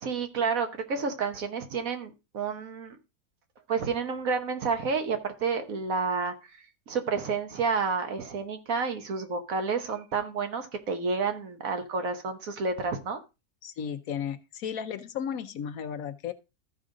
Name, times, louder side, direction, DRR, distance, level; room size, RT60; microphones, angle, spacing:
voice 1, 0.0-3.0 3.7-6.3 6.9-13.2, right 5 dB, 65° right, 7 dB, 1.5 m, -30 dB
voice 2, 13.6-16.3, left 8 dB, 70° left, 10 dB, 1.1 m, -34 dB
13.5 x 5.1 x 3.7 m, 0.28 s
omnidirectional pair, 1.6 m